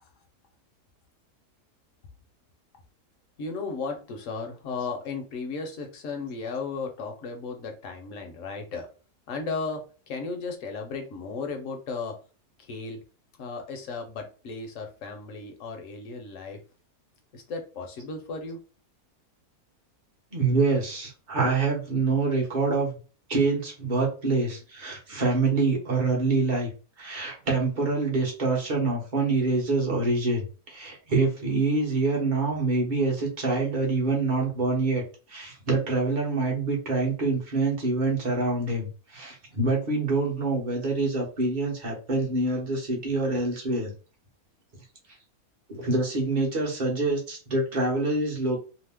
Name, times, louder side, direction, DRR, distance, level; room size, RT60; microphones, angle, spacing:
voice 1, 3.4-8.9 9.3-12.2 12.6-13.0 13.4-16.6 17.3-18.6, left 4 dB, 65° left, 4 dB, 1.0 m, -35 dB
voice 2, 20.3-23.0 23.3-26.7 27.0-35.0 35.3-43.9 45.7-48.6, right 3 dB, 40° right, -2 dB, 0.9 m, -26 dB
2.8 x 2.0 x 3.3 m, 0.36 s
omnidirectional pair, 1.6 m